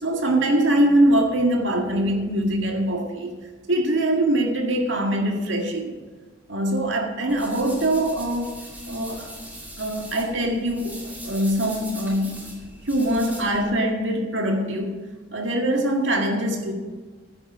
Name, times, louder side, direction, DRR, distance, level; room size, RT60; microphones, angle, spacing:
voice 1, 0.0-3.4 3.7-6.0 6.5-8.5 8.9-9.3 9.8-12.6 12.9-15.0 15.3-16.7, right 1 dB, 65° right, 2 dB, 2.0 m, -23 dB
sound 1, 7.3-13.7, right 1 dB, 10° right, 2.5 m, -41 dB
11.5 x 9.8 x 6.3 m, 1.4 s
head